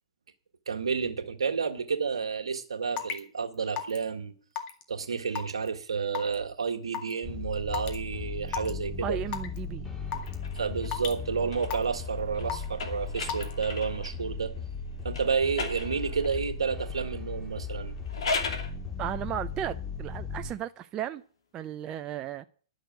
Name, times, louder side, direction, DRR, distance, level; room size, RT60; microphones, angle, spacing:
voice 1, 0.7-4.3 4.9-9.2 10.5-14.5 15.0-17.9, right 5 dB, 90° right, 1.7 m, -30 dB
Raindrop / Water tap faucet / Drip, 3.0-3.2 3.8-4.0 4.6-4.8 5.3-5.7 6.1-6.3 6.9-7.1 7.7-7.9 8.5-8.7 9.3-9.6 10.1-10.3 10.9-11.2 11.7-12.0 12.5-12.8 13.3-13.5, left 9 dB, 35° left, 2.0 m, -33 dB
sound 1, 7.2-20.5, left 4 dB, 10° left, 2.6 m, -37 dB
voice 2, 9.0-9.9 19.0-21.2 21.5-22.4, right 10 dB, 25° right, 0.6 m, -35 dB
sound 2, 10.2-14.3 15.1-16.5 17.9-18.7, left 4 dB, 75° left, 2.8 m, -37 dB
11.0 x 6.5 x 9.3 m
hypercardioid pair, 125°, 3 cm